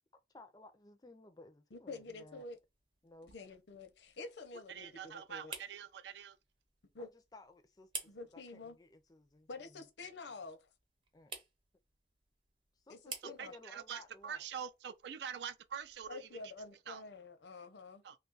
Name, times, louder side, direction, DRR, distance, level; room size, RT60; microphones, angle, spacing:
voice 1, 0.3-2.4 3.0-3.3 7.0-9.8 11.1-11.3 12.8-14.5, left 2 dB, 20° left, 0.4 m, -58 dB
voice 2, 1.7-2.6 3.3-5.5 6.9-7.1 8.0-8.7 9.5-10.7 12.9-13.5 16.1-18.0, left 3 dB, 80° left, 0.7 m, -48 dB
sound 1, 1.9-16.7, right 4 dB, 30° right, 0.7 m, -54 dB
voice 3, 4.7-6.4 13.4-16.3 16.9-17.0 18.0-18.2, right 8 dB, 70° right, 0.4 m, -45 dB
3.1 x 2.3 x 3.8 m
head